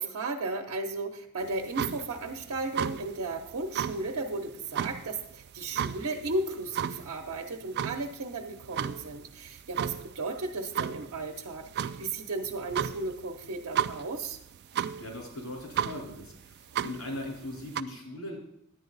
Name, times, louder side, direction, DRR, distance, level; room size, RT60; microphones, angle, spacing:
voice 1, 0.0-14.4, right 2 dB, 85° right, 3 dB, 0.8 m, -35 dB
sound 1, 1.4-17.8, right 9 dB, 50° right, 0.3 m, -35 dB
voice 2, 14.7-18.4, left 1 dB, 80° left, -1 dB, 3.6 m, -40 dB
11.0 x 8.8 x 4.0 m, 0.75 s
head